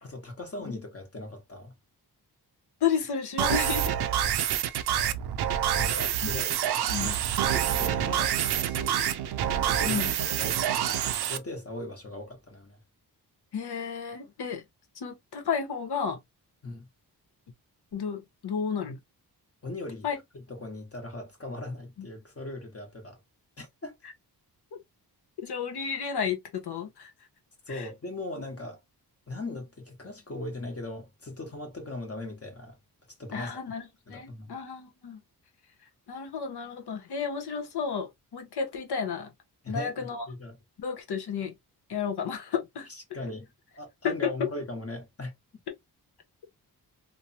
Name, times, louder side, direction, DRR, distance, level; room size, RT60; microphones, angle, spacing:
voice 1, 0.0-1.7 5.7-6.6 7.0-7.2 7.5-9.1 9.4-10.0 10.4-12.8 16.6-16.9 19.6-20.1 20.5-23.2 23.6-24.0 27.7-28.8 29.3-32.8 33.2-33.6 34.1-34.6 39.6-40.6 42.9-43.5 43.8-45.3, left 2 dB, 35° left, 1.1 m, -39 dB
voice 2, 2.8-3.9 6.9-7.2 9.8-10.1 13.5-14.6 14.9-16.2 17.9-19.0 20.0-20.2 22.0-22.1 25.4-27.1 27.7-27.9 33.3-35.2 36.1-39.3 39.7-40.3 40.8-41.5 41.9-42.9 44.0-44.3, left 6 dB, 75° left, 0.9 m, -32 dB
sound 1, 3.4-11.4, right 10 dB, 70° right, 0.5 m, -27 dB
3.1 x 2.1 x 2.7 m
wide cardioid pair, 105°, 41 cm